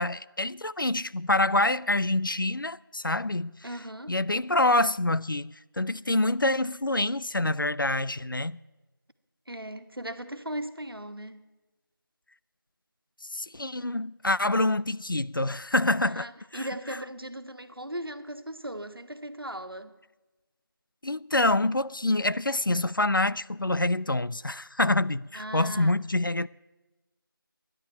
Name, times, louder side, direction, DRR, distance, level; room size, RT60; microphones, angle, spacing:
voice 1, 0.0-3.6 4.1-8.6 13.3-16.3 16.5-16.6 21.0-26.5, left 2 dB, 65° left, 0.4 m, -26 dB
voice 2, 3.6-4.2 9.5-11.4 16.0-19.9 25.3-26.0, right 1 dB, 80° right, 1.4 m, -38 dB
13.0 x 11.0 x 9.2 m
figure-of-eight pair, 180°, 12 cm